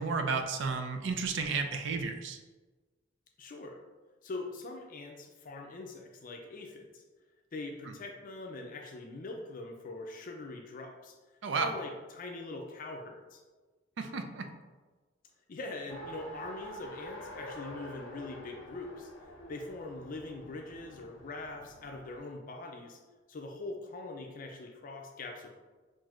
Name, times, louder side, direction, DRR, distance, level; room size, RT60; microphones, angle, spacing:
voice 1, 0.0-2.4 11.4-11.7 14.0-14.5, right 4 dB, 70° right, 6 dB, 0.5 m, -32 dB
voice 2, 3.4-3.8 4.2-7.0 7.5-11.2 11.5-13.4 15.5-19.1 19.5-23.0 23.3-25.5, left 2 dB, 45° left, 2 dB, 0.4 m, -42 dB
Race car auto racing, 15.9-22.2, equal, 85° left, 0.6 m, -47 dB
5.7 x 2.6 x 2.4 m, 1.3 s
head